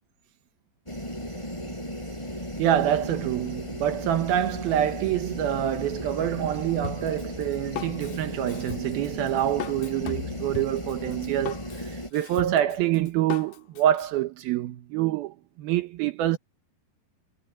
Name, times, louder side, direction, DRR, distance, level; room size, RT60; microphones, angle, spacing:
sound 1, 0.9-12.1, equal, 5° left, 7.5 m, -36 dB
voice 1, 2.6-16.4, right 12 dB, 75° right, 2.6 m, -26 dB
Drum kit, 6.8-14.1, left 10 dB, 65° left, 2.5 m, -38 dB
omnidirectional pair, 4.8 m